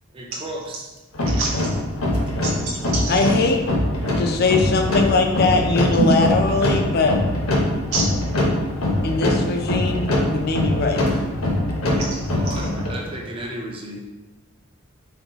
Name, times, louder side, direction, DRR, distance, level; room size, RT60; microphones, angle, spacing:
voice 1, 0.1-0.9 12.4-14.0, right 1 dB, 25° right, 0 dB, 0.5 m, -33 dB
sound 1, 1.1-13.0, left 1 dB, 75° left, 0.8 m, -23 dB
voice 2, 1.2-1.7 2.4-3.2 6.0-6.1 7.9-8.1 11.9-12.2 12.4-12.7, right 3 dB, 75° right, -2 dB, 0.4 m, -26 dB
voice 3, 3.1-3.6 4.2-7.2 9.0-11.2, left 3 dB, 50° left, 4 dB, 0.4 m, -21 dB
4.0 x 2.3 x 3.9 m, 1.1 s
head